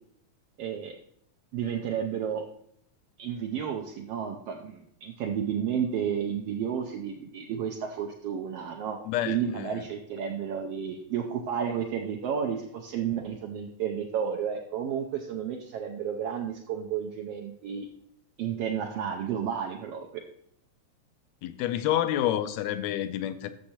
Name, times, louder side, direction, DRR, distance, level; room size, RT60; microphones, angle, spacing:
voice 1, 0.6-1.0 1.5-2.4 3.2-17.9 18.4-20.2, right 8 dB, 80° right, 1.4 m, -32 dB
voice 2, 9.0-9.8 21.4-23.5, left 12 dB, 80° left, 1.6 m, -29 dB
13.0 x 6.5 x 2.9 m
omnidirectional pair, 3.4 m